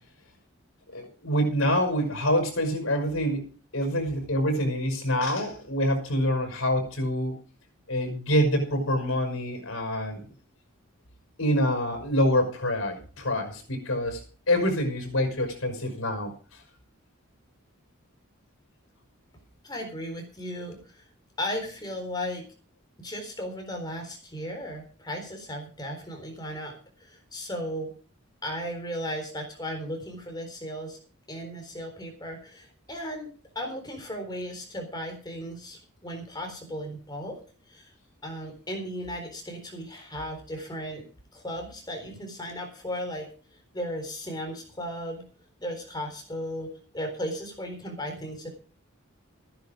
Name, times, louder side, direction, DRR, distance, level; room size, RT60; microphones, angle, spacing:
voice 1, 0.9-3.4 3.7-7.4 7.9-10.2 11.4-16.3, equal, 70° left, 5 dB, 5.7 m, -26 dB
voice 2, 19.6-21.0 21.4-22.4 23.0-27.9 28.4-31.0 31.3-37.4 37.7-37.9 38.2-41.1 41.3-43.3 43.7-45.3 45.6-48.5, equal, 20° left, 3 dB, 3.9 m, -36 dB
15.0 x 10.5 x 5.1 m, 0.38 s
head